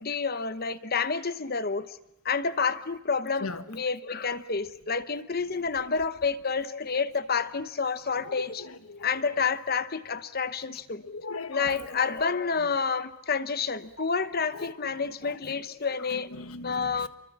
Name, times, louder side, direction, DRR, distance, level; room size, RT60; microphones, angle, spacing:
voice 1, 0.0-2.0 2.2-8.7 9.0-11.0 11.5-16.3 16.6-17.1, left 5 dB, 45° left, 1.0 m, -29 dB
voice 2, 8.2-9.1 11.0-12.0 14.5-15.5 16.1-17.1, left 3 dB, 80° left, 1.5 m, -40 dB
29.5 x 23.5 x 7.4 m
head